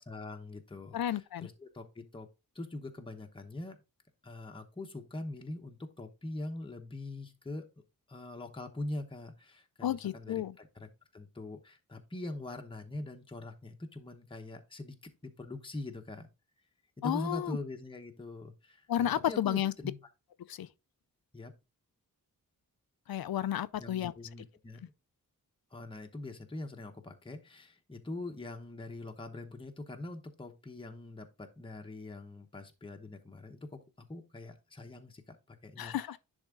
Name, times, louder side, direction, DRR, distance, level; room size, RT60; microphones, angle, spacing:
voice 1, 0.0-2.3 2.5-3.8 4.2-7.7 8.1-14.9 15.2-16.3 17.0-20.0 21.3-21.5 23.8-24.9 25.7-36.0, left 2 dB, 15° left, 0.9 m, -43 dB
voice 2, 0.9-1.5 9.8-10.6 17.0-17.6 18.9-19.7 20.5-20.7 23.1-24.1 35.8-36.2, left 11 dB, 85° left, 0.6 m, -32 dB
10.5 x 3.6 x 3.6 m
wide cardioid pair, 145°, 35 cm